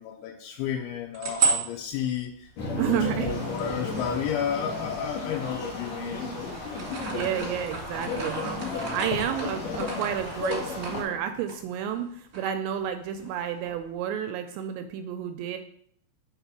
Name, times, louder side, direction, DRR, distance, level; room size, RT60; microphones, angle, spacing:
voice 1, 0.0-6.3 9.1-9.2, left 8 dB, 85° left, -2 dB, 3.1 m, -32 dB
sound 1, 0.8-4.9 5.4-6.3 6.5-12.1 12.3-12.5 12.8-13.9, right 4 dB, 45° right, 1.3 m, -33 dB
sound 2, 2.6-11.2, left 4 dB, 65° left, 1.7 m, -35 dB
voice 2, 2.8-3.3 7.1-15.6, right 9 dB, 85° right, 7 dB, 2.5 m, -31 dB
sound 3, 3.3-11.0, left 1 dB, 45° left, 3.9 m, -40 dB
7.2 x 3.7 x 6.0 m, 0.64 s
omnidirectional pair, 5.4 m